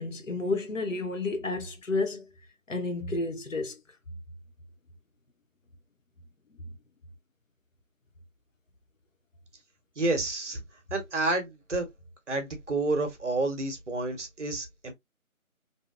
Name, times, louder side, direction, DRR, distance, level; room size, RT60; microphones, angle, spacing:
voice 1, 0.0-2.3 2.7-3.8, left 3 dB, 60° left, 0.8 m, -31 dB
voice 2, 10.0-10.6 10.9-11.8 12.3-14.9, right 2 dB, 55° right, 0.9 m, -29 dB
2.7 x 2.1 x 2.3 m
figure-of-eight pair, 175°, 43 cm